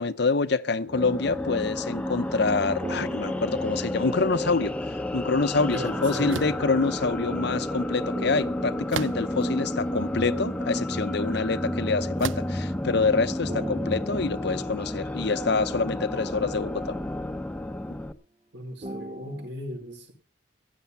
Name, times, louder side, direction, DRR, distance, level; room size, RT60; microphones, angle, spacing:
voice 1, 0.0-16.9, left 4 dB, 60° left, 0.7 m, -26 dB
sound 1, 0.8-18.1, left 1 dB, 5° left, 0.7 m, -31 dB
sound 2, 2.8-5.2 8.1-10.4 13.5-17.1 18.8-19.5, right 1 dB, 30° right, 0.6 m, -42 dB
voice 2, 5.7-6.4 18.5-20.1, equal, 65° right, 5.0 m, -36 dB
sound 3, 6.3-6.6 8.9-9.5 10.2-10.3 12.2-12.6, right 6 dB, 85° right, 0.6 m, -34 dB
15.0 x 10.5 x 5.6 m
head